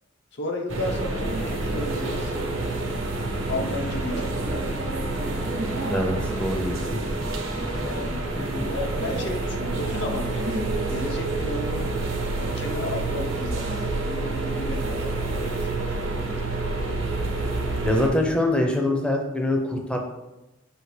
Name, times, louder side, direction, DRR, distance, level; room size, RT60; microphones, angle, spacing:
voice 1, 0.3-2.4 3.5-4.8 7.7-8.3 8.7-11.9 12.5-16.7, left 1 dB, 60° left, 2 dB, 0.7 m, -34 dB
sound 1, 0.7-18.1, right 2 dB, 85° right, 0.8 m, -28 dB
voice 2, 5.9-7.0 8.5-8.6 17.8-20.0, left 1 dB, 5° left, 1 dB, 0.5 m, -24 dB
5.8 x 2.9 x 3.2 m, 1.0 s
head